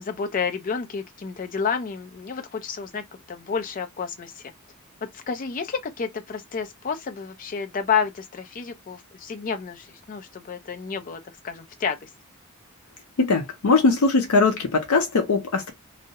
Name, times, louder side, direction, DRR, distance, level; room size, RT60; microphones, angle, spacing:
voice 1, 0.0-4.4 5.0-12.1, left 6 dB, 40° left, 0.4 m, -30 dB
voice 2, 13.2-15.7, left 3 dB, 85° left, 0.6 m, -20 dB
2.3 x 2.0 x 2.7 m
head